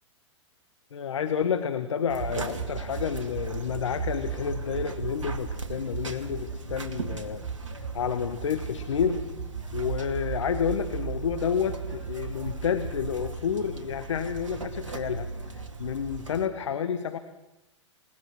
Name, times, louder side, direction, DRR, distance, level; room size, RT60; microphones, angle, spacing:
voice 1, 0.9-7.4 7.7-9.3 9.7-17.2, left 7 dB, 75° left, 10 dB, 1.5 m, -30 dB
sound 1, 2.1-16.5, right 5 dB, 85° right, 2.6 m, -35 dB
28.0 x 18.5 x 6.2 m, 0.95 s
hypercardioid pair, 110°, 16 cm